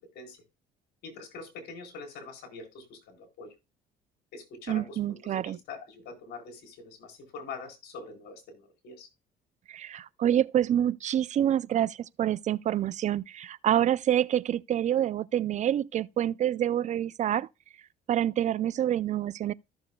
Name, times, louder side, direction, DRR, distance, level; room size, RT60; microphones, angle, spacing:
voice 1, 1.0-3.5 4.3-9.1, left 4 dB, 75° left, 4.0 m, -44 dB
voice 2, 4.7-5.6 9.7-17.5 18.1-19.5, right 11 dB, 45° right, 0.4 m, -27 dB
14.5 x 6.9 x 2.2 m
cardioid pair, 110°, 17 cm